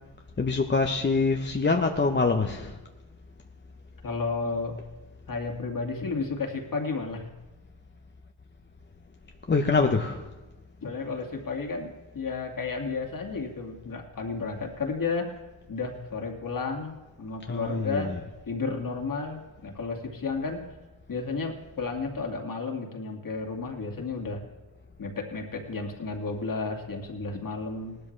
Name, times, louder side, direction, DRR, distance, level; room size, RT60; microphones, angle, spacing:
voice 1, 0.4-2.8 9.5-10.2 17.5-18.2, left 4 dB, 20° left, 3 dB, 0.9 m, -25 dB
voice 2, 4.0-4.8 5.3-7.3 10.8-15.4 15.7-18.2 18.5-20.6 21.1-24.4 25.0-28.0, left 4 dB, 40° left, 2 dB, 2.3 m, -32 dB
18.0 x 12.5 x 3.3 m, 1.2 s
cardioid pair, 85°, 49 cm